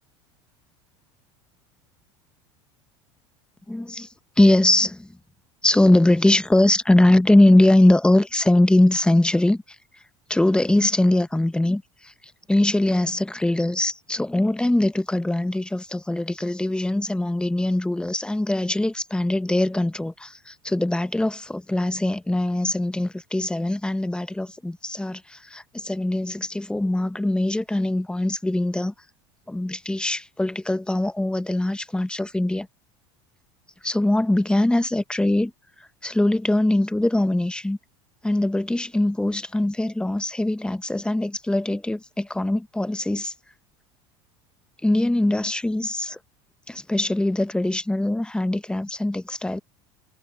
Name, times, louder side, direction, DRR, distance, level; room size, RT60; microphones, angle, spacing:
voice 1, 3.7-4.1 4.4-5.1 5.6-9.6 10.3-12.1 12.5-28.9 29.5-32.7 33.8-35.5 36.0-37.8 38.2-43.3 44.8-46.2 46.7-49.6, left 1 dB, 5° left, 1.3 m, -22 dB
hypercardioid pair, 85°, 16 cm